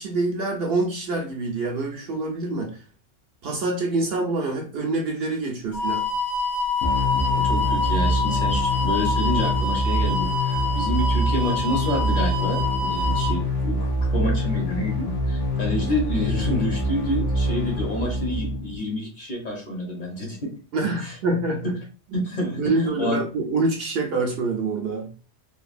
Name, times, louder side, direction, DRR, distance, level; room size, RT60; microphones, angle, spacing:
voice 1, 0.0-2.8 3.4-6.1 20.7-21.7 22.1-22.3 22.5-25.1, right 3 dB, 60° right, 0.7 m, -26 dB
sound 1, 5.7-13.3, left 3 dB, 65° left, 1.4 m, -26 dB
sound 2, 6.8-18.8, equal, 80° left, 1.0 m, -25 dB
voice 2, 7.3-20.5 21.0-21.1 21.6-21.7 22.1-23.2, left 1 dB, 45° left, 0.9 m, -28 dB
3.2 x 2.3 x 2.4 m
omnidirectional pair, 1.2 m